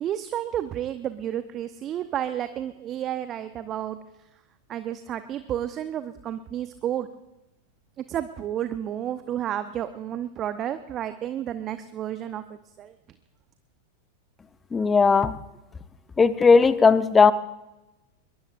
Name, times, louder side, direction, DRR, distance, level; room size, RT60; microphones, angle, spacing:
voice 1, 0.0-4.0 4.7-7.1 8.1-12.9, right 11 dB, 30° right, 11 dB, 0.8 m, -31 dB
voice 2, 14.7-15.4 16.2-17.3, left 5 dB, 15° left, 13 dB, 0.8 m, -17 dB
22.5 x 22.5 x 2.6 m, 0.97 s
figure-of-eight pair, 90°, 0 cm